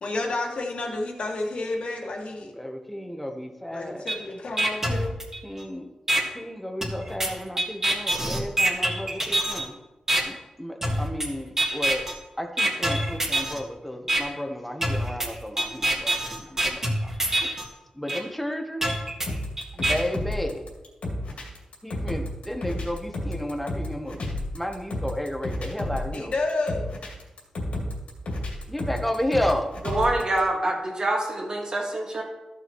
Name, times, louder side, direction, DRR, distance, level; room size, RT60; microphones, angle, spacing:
voice 1, 0.0-2.5 3.7-5.1 26.1-26.9, left 2 dB, 65° left, 0 dB, 1.8 m, -30 dB
voice 2, 2.6-4.1 5.4-5.8 6.3-9.8 10.3-12.0 12.4-16.6 17.0-17.1 17.4-17.5 18.0-18.8 19.8-20.6 21.8-24.2 24.5-26.3 28.7-29.7, left 1 dB, 5° left, 4 dB, 1.1 m, -32 dB
sound 1, 4.1-4.2 4.6-5.6 6.1-6.2 6.8-9.6 10.1-10.2 10.8-11.3 11.6-12.1 12.6-13.6 14.1-14.2 14.8-17.6 18.1-18.2 18.8-19.9, right 1 dB, 20° right, 1.7 m, -25 dB
sound 2, 19.3-30.4, left 1 dB, 85° left, 2.8 m, -32 dB
voice 3, 29.8-32.2, right 1 dB, 40° right, 0 dB, 1.9 m, -26 dB
14.0 x 6.8 x 3.1 m, 1.1 s
wide cardioid pair, 115°, 2 cm